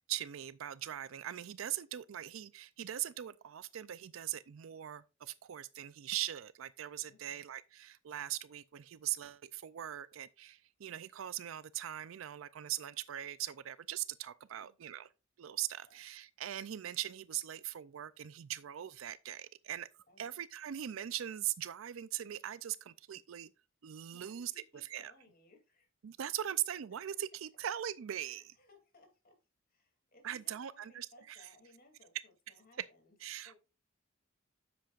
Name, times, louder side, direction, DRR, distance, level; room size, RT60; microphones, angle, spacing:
voice 1, 0.1-15.1 15.4-19.9 20.2-23.5 23.8-25.1 26.0-28.4 30.2-31.5 32.8-32.9 33.2-33.6, right 12 dB, 80° right, 0.4 m, -41 dB
voice 2, 7.1-7.4 14.5-14.7 15.9-16.0 20.1-20.4 24.1-25.9 28.2-29.3 29.7-33.6, left 2 dB, 50° left, 2.7 m, -64 dB
10.0 x 7.7 x 2.4 m
head